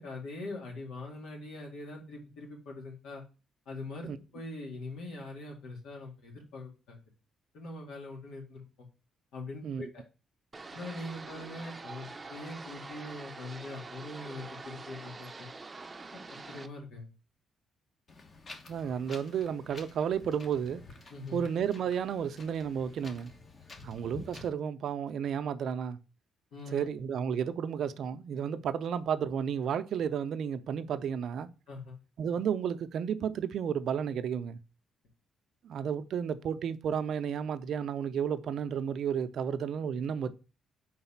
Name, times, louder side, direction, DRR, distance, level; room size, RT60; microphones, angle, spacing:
voice 1, 0.0-3.2 3.7-7.0 7.5-8.6 9.3-10.0 10.7-15.5 16.1-16.2 16.5-17.1 21.1-21.4 26.5-26.9 31.7-32.0, left 2 dB, 85° left, 2.3 m, -42 dB
sound 1, 10.5-16.7, right 3 dB, 25° right, 0.6 m, -45 dB
Wind, 18.1-24.5, left 3 dB, 40° left, 1.3 m, -50 dB
voice 2, 18.7-20.8 21.3-23.3 23.8-26.0 26.7-31.5 32.2-34.6 35.6-40.3, right 8 dB, 65° right, 0.5 m, -32 dB
4.8 x 4.0 x 5.7 m
cardioid pair, 90°, 0 cm